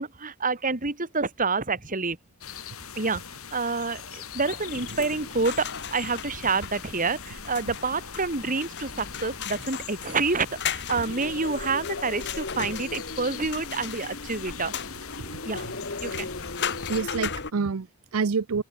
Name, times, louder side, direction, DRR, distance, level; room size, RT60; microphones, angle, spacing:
voice 1, 0.0-2.2 2.9-3.2 3.5-14.9 15.4-15.7 16.0-16.3, right 4 dB, 40° right, 3.1 m, -28 dB
sound 1, 2.4-17.0, left 7 dB, 85° left, 3.5 m, -41 dB
sound 2, 4.6-17.5, left 5 dB, 55° left, 2.4 m, -36 dB
voice 2, 16.9-18.6, right 5 dB, 85° right, 0.6 m, -28 dB
open air
head